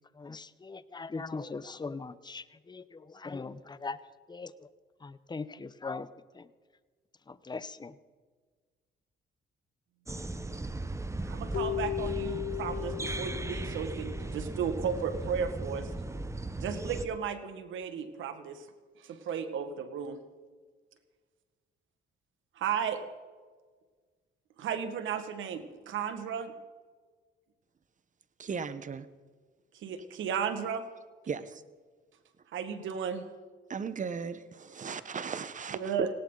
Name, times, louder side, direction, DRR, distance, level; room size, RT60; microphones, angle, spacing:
voice 1, 0.1-4.0 4.3-4.7 5.0-6.1 6.3-6.5 7.3-8.0, left 4 dB, 20° left, 15 dB, 0.8 m, -40 dB
sound 1, 10.1-17.0, right 2 dB, 15° right, 1.0 m, -37 dB
voice 2, 11.2-15.9 16.6-18.7 19.0-20.2 22.6-23.0 24.6-26.5 29.7-30.9 32.5-33.3 35.8-36.1, right 7 dB, 80° right, 9 dB, 1.8 m, -34 dB
Keyboard (musical), 11.5-14.8, left 14 dB, 70° left, 0.5 m, -37 dB
voice 3, 28.4-29.1 30.1-30.2 31.3-31.6 33.7-35.9, right 6 dB, 40° right, 13 dB, 1.1 m, -37 dB
18.5 x 17.5 x 4.0 m, 1.5 s
cardioid pair, 90°, 20 cm